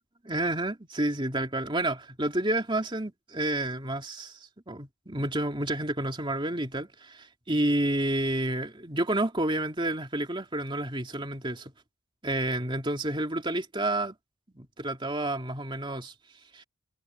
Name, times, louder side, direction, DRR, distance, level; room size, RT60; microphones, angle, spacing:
voice 1, 0.2-4.4 4.7-11.7 12.2-14.1 14.5-16.1 16.5-16.6, right 1 dB, 20° right, 2.8 m, -30 dB
head